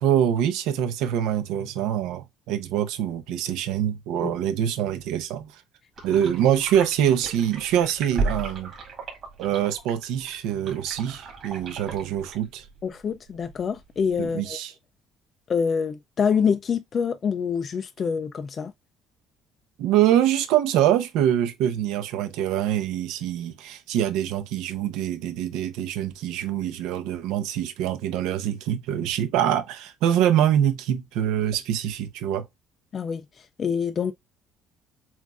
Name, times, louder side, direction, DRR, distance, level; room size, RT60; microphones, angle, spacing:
voice 1, 0.0-5.5 6.0-8.7 9.4-12.6 14.2-14.7 19.8-32.5, right 10 dB, 85° right, 0.8 m, -24 dB
sound 1, 6.0-14.3, right 3 dB, 35° right, 2.2 m, -35 dB
voice 2, 12.8-14.6 15.5-18.7 32.9-34.1, left 6 dB, 30° left, 0.3 m, -26 dB
7.2 x 2.5 x 2.4 m
cardioid pair, 175°, 0 cm